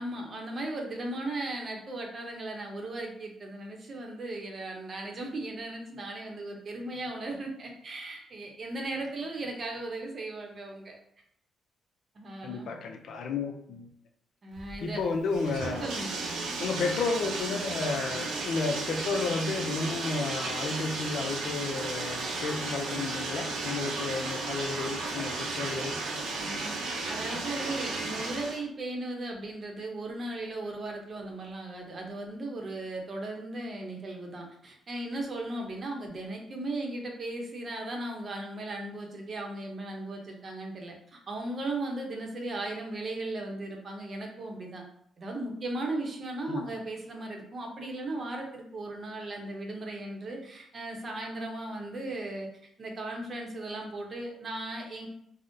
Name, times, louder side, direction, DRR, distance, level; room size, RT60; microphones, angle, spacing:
voice 1, 0.0-11.0 12.1-12.7 14.4-15.0 15.8-16.4 26.4-26.8 27.1-44.8 45.2-52.5 52.8-55.1, right 2 dB, 45° right, 1 dB, 0.7 m, -37 dB
voice 2, 12.4-13.9 14.8-15.9 16.6-26.0 46.5-46.6, left 4 dB, 70° left, 4 dB, 0.4 m, -32 dB
Bathtub (filling or washing), 14.6-28.6, right 3 dB, 85° right, 0.5 m, -34 dB
3.6 x 2.0 x 2.6 m, 0.71 s
cardioid pair, 90°, 0 cm